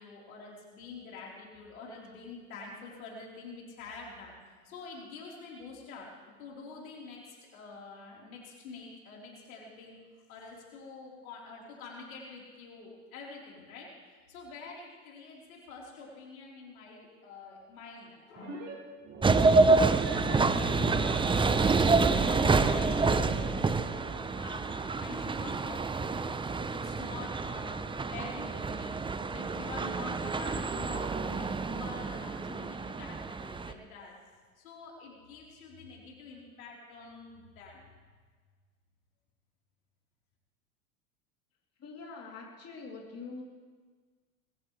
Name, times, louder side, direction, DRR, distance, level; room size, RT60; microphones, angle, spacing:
voice 1, 0.0-4.3 4.6-6.1 6.4-10.0 10.3-18.7 19.6-26.4 26.7-29.0 29.3-34.2 34.6-37.8, left 4 dB, 80° left, -3 dB, 4.3 m, -47 dB
sound 1, 18.4-18.7 19.0-24.0, right 1 dB, 35° right, 5.4 m, -40 dB
sound 2, 19.2-33.7, right 4 dB, 10° right, 0.7 m, -28 dB
voice 2, 41.8-43.4, left 4 dB, 35° left, -2 dB, 3.4 m, -44 dB
21.0 x 15.5 x 3.4 m, 1.5 s
hypercardioid pair, 85°, 42 cm